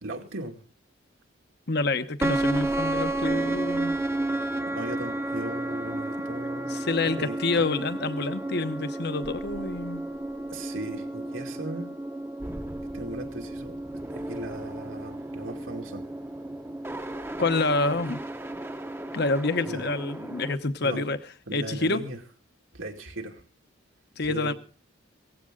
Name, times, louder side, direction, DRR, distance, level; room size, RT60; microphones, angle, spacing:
voice 1, 0.0-0.6 4.7-6.7 7.0-7.7 10.5-11.9 12.9-16.0 19.6-19.9 20.8-21.1 21.5-22.2 22.7-23.4 24.2-24.5, right 2 dB, 80° right, 2.4 m, -38 dB
voice 2, 1.7-3.9 6.7-10.0 17.4-18.2 19.1-21.2 21.5-22.0 24.2-24.5, left 3 dB, 55° left, 0.9 m, -27 dB
sound 1, 2.2-20.5, right 2 dB, 10° right, 0.8 m, -32 dB
17.5 x 15.5 x 3.8 m
head